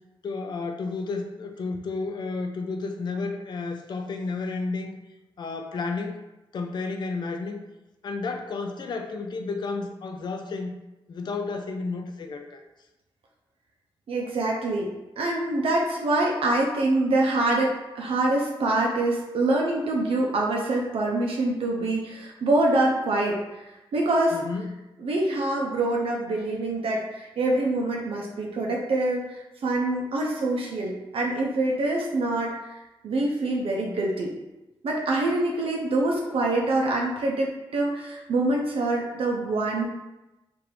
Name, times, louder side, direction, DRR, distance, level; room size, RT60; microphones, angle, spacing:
voice 1, 0.2-5.0 5.4-6.2 6.5-7.6 8.0-10.7 11.1-12.6 24.3-24.7, left 3 dB, 50° left, 4 dB, 0.4 m, -32 dB
voice 2, 14.1-23.4 23.9-24.4 25.0-32.8 33.0-34.3 34.8-39.9, right 2 dB, 80° right, -1 dB, 0.5 m, -25 dB
3.3 x 2.5 x 4.4 m, 1.0 s
wide cardioid pair, 145°, 9 cm